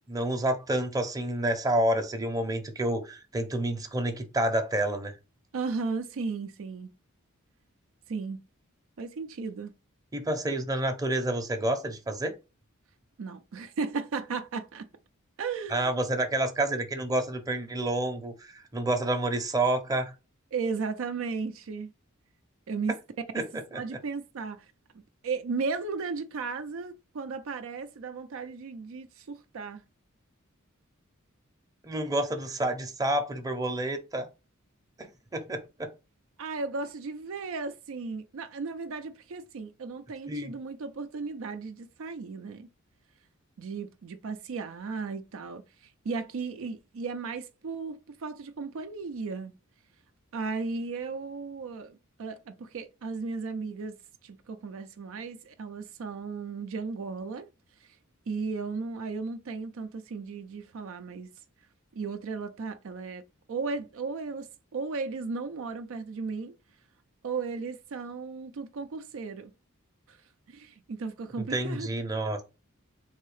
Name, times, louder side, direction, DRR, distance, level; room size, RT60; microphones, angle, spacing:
voice 1, 0.1-5.1 10.1-12.3 15.7-20.1 23.3-23.4 23.7-23.8 31.8-34.3 35.0-35.9 40.3-40.5 71.4-72.4, right 1 dB, 15° right, 0.7 m, -29 dB
voice 2, 5.5-6.9 8.1-8.4 9.0-9.7 13.2-14.9 15.4-15.9 20.5-21.9 22.7-23.0 23.4-23.5 23.7-24.7 25.2-29.8 36.4-42.7 43.6-49.5 50.3-54.0 54.2-57.5 57.8-57.9 58.3-61.3 61.9-63.2 63.5-66.5 67.2-69.5 70.1-70.2 70.5-71.9, right 4 dB, 70° right, 0.4 m, -35 dB
3.8 x 2.7 x 3.1 m
head